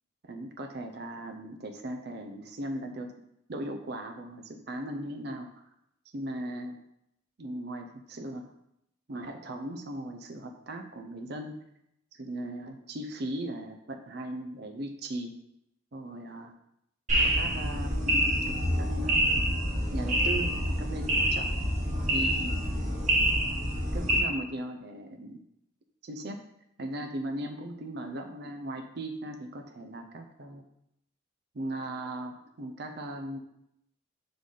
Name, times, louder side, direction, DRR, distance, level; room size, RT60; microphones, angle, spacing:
voice 1, 0.2-3.1 3.5-5.5 6.1-6.8 7.4-8.5 9.1-11.6 12.1-15.3 15.9-16.5 17.2-19.4 19.9-21.6 22.1-22.6 23.9-25.4 26.0-26.4 26.8-30.6 31.5-33.4, right 1 dB, 55° right, 5 dB, 0.5 m, -38 dB
sound 1, 17.1-24.2, right 1 dB, 35° right, 1.6 m, -27 dB
4.9 x 4.0 x 5.3 m, 0.79 s
head